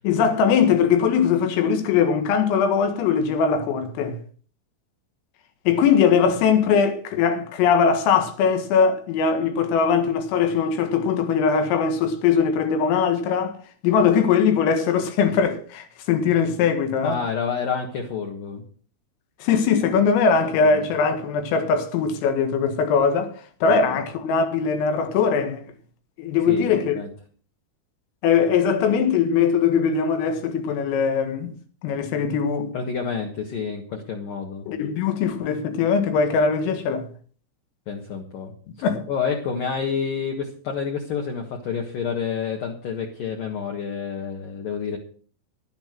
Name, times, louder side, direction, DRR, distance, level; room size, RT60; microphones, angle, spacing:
voice 1, 0.0-4.2 5.7-13.6 13.8-17.2 19.4-23.3 23.6-25.6 26.2-27.0 28.2-32.7 34.7-37.1 38.8-39.0, left 6 dB, 85° left, 4.4 m, -21 dB
voice 2, 17.0-18.6 19.8-20.0 20.6-20.9 23.9-24.0 26.5-27.1 32.7-34.7 37.9-38.5 39.1-45.0, left 6 dB, 60° left, 2.5 m, -29 dB
11.5 x 11.0 x 6.2 m
omnidirectional pair, 5.8 m